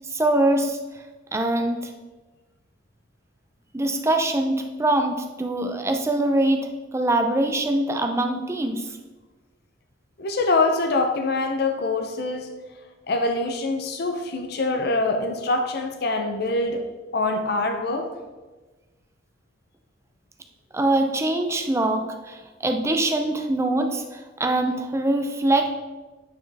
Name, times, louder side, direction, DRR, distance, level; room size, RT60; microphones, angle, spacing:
voice 1, 0.1-0.8 1.3-1.9 3.7-8.9 20.7-25.7, right 1 dB, 15° right, 5 dB, 0.5 m, -23 dB
voice 2, 10.2-12.5 13.1-16.8 17.1-18.1, left 2 dB, 55° left, 5 dB, 0.5 m, -24 dB
8.7 x 4.3 x 3.3 m, 1.2 s
head